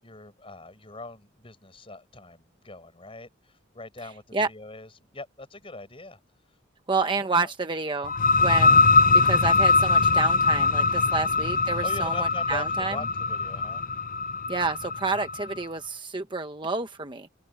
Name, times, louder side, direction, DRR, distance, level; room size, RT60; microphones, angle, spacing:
voice 1, 0.0-6.2 7.2-7.5 11.8-13.8, left 2 dB, 30° left, 6.5 m, -42 dB
voice 2, 6.9-8.1 8.4-8.8 9.2-13.0 14.5-17.3, right 3 dB, 25° right, 1.1 m, -29 dB
sound 1, 8.0-15.5, left 3 dB, 45° left, 0.7 m, -22 dB
head